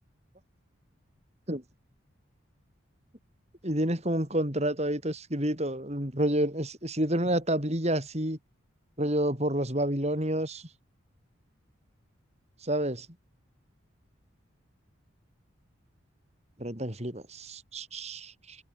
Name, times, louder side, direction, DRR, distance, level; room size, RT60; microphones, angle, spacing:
voice 1, 3.6-8.4 9.0-10.6 12.6-13.1 16.6-18.6, right 1 dB, 35° right, 5.8 m, -29 dB
head